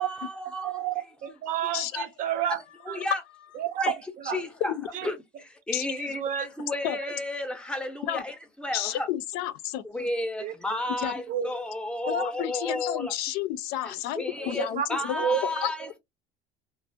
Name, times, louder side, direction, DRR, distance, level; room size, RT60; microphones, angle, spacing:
voice 1, 0.0-0.8 1.9-2.1 2.5-3.2 3.8-3.9 4.2-4.7 5.0-9.1 9.8-13.1 13.8-15.9, left 1 dB, 5° left, 0.5 m, -33 dB
voice 2, 0.6-2.6 2.9-3.0 3.6-3.9 4.2-4.4 4.9-5.1 6.0-6.5 10.4-10.5 11.3-11.5 12.0-12.3 14.4-14.9 15.2-15.4 15.8-16.0, right 9 dB, 55° right, 0.6 m, -30 dB
voice 3, 8.7-9.8 11.0-11.1 12.1-15.3 15.6-15.7, left 12 dB, 75° left, 0.4 m, -31 dB
2.5 x 2.0 x 2.5 m
cardioid pair, 135°, 16 cm